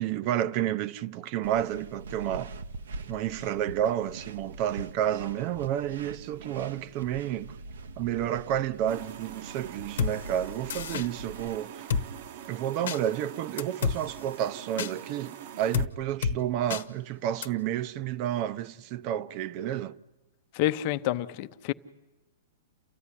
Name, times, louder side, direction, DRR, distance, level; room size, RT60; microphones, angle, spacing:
voice 1, 0.0-2.5 3.1-7.6 8.0-11.9 12.5-20.0, right 11 dB, 40° right, 0.7 m, -30 dB
sound 1, 1.4-11.6, right 3 dB, 80° right, 0.9 m, -43 dB
sound 2, 8.9-15.9, right 10 dB, 60° right, 1.0 m, -44 dB
Drum kit, 10.0-10.1 10.7-11.1 11.9-12.1 12.9-13.0 13.6-14.0 14.8-14.9 15.7-15.9 16.2-16.4 16.7-16.8 17.4-17.5, left 6 dB, 75° left, 1.0 m, -28 dB
voice 2, 20.5-21.7, left 14 dB, 45° left, 0.8 m, -28 dB
28.5 x 14.0 x 9.9 m
hypercardioid pair, 135°, 0 cm